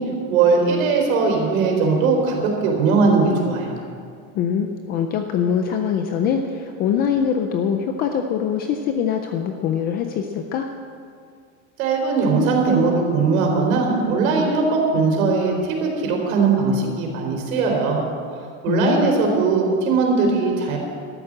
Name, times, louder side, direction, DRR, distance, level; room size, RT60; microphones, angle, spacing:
voice 1, 0.3-2.4 2.6-3.8 11.8-18.0 18.6-20.8, right 4 dB, 75° right, 1 dB, 4.3 m, -19 dB
voice 2, 4.3-10.7 18.7-19.2, left 7 dB, 25° left, 5 dB, 0.4 m, -23 dB
13.0 x 11.0 x 7.7 m, 2.2 s
supercardioid pair, 170°, 42 cm